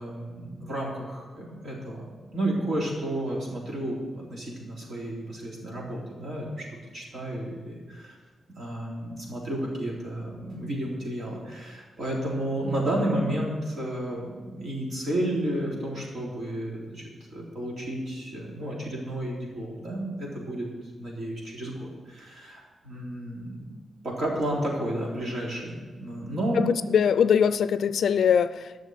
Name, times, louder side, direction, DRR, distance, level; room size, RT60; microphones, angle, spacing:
voice 1, 0.0-6.6 6.9-8.2 8.6-17.0 17.3-20.7 21.0-23.6 24.0-26.6, right 1 dB, 50° right, -3 dB, 3.8 m, -32 dB
voice 2, 26.6-28.9, left 7 dB, 65° left, 14 dB, 0.4 m, -22 dB
12.5 x 6.6 x 8.2 m, 1.4 s
wide cardioid pair, 175°, 0 cm